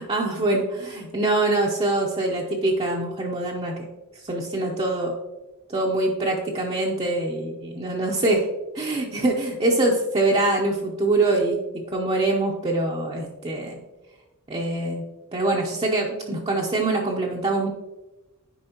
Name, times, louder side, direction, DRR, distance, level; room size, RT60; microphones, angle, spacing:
voice 1, 0.0-3.9 4.2-5.1 5.7-8.5 8.7-13.8 14.5-15.0 15.3-17.7, right 2 dB, 25° right, -3 dB, 0.7 m, -24 dB
9.9 x 4.8 x 2.9 m, 1.1 s
head